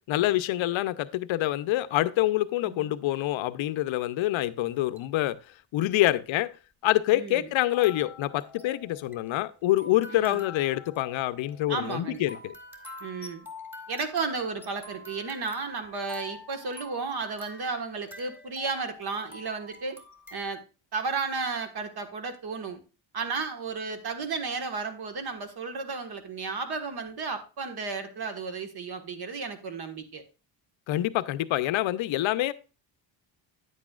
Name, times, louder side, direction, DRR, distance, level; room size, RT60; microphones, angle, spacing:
voice 1, 0.1-5.4 5.7-6.5 6.8-12.5 30.9-32.5, left 15 dB, 70° left, 0.7 m, -26 dB
sound 1, 4.7-5.2 6.0-6.1 7.7-20.4, left 3 dB, 5° right, 1.8 m, -46 dB
voice 2, 7.1-7.5 10.1-10.4 11.7-12.2 13.0-13.5 13.9-20.0 20.3-20.6 20.9-22.8 23.1-30.2, right 4 dB, 50° right, 1.7 m, -33 dB
9.5 x 8.3 x 2.4 m
cardioid pair, 120°, 49 cm